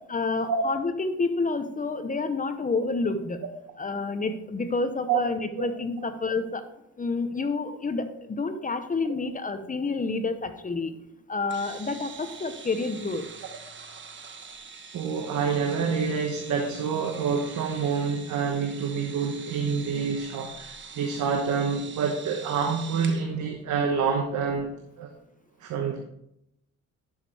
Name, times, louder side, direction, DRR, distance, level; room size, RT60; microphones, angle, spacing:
voice 1, 0.1-3.4 3.8-6.7 7.0-10.9 11.3-13.3, left 3 dB, 25° left, 9 dB, 0.8 m, -29 dB
sound 1, 11.5-23.2, right 5 dB, 40° right, 1.2 m, -44 dB
voice 2, 14.9-25.1 25.6-26.0, right 5 dB, 75° right, 3 dB, 1.1 m, -27 dB
11.0 x 6.2 x 3.4 m, 0.80 s
cardioid pair, 90°, 30 cm